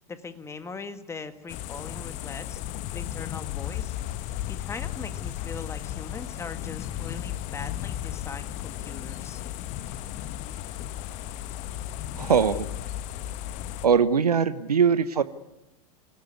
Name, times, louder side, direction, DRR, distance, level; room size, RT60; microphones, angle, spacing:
voice 1, 0.1-2.6 2.9-3.9 4.5-9.4, left 4 dB, 15° left, 9 dB, 1.9 m, -40 dB
sound 1, 1.5-13.9, left 12 dB, 35° left, 1.1 m, -35 dB
voice 2, 12.2-12.7 13.8-15.2, right 6 dB, 75° right, 14 dB, 1.0 m, -21 dB
26.0 x 16.5 x 9.5 m, 0.99 s
figure-of-eight pair, 95°, 20 cm